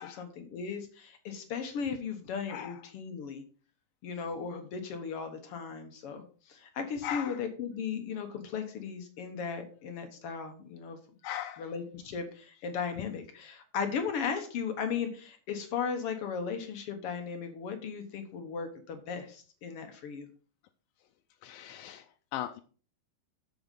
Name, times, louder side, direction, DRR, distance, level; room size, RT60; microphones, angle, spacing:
voice 1, 0.0-3.4 4.0-11.0 11.6-20.3, left 6 dB, 60° left, 7 dB, 1.5 m, -36 dB
voice 2, 2.5-2.9 7.0-7.4 11.2-11.7 21.4-22.6, left 12 dB, 85° left, 6 dB, 2.3 m, -39 dB
7.9 x 7.3 x 5.2 m, 0.40 s
omnidirectional pair, 4.1 m